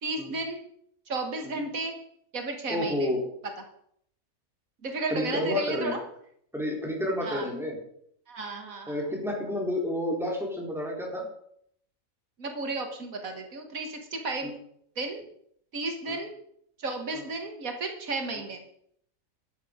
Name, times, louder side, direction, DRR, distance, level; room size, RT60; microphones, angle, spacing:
voice 1, 0.0-0.6 1.1-2.0 2.3-3.1 4.8-6.0 7.2-7.5 8.3-9.0 12.4-14.5 15.0-15.2 15.7-16.3 16.8-18.6, right 3 dB, 85° right, 5 dB, 2.1 m, -33 dB
voice 2, 2.7-3.2 5.1-6.0 6.5-7.8 8.9-11.3 14.4-14.5 16.1-16.2 17.1-17.2, left 1 dB, ahead, -1 dB, 3.8 m, -30 dB
13.0 x 9.4 x 5.1 m, 0.68 s
omnidirectional pair, 1.4 m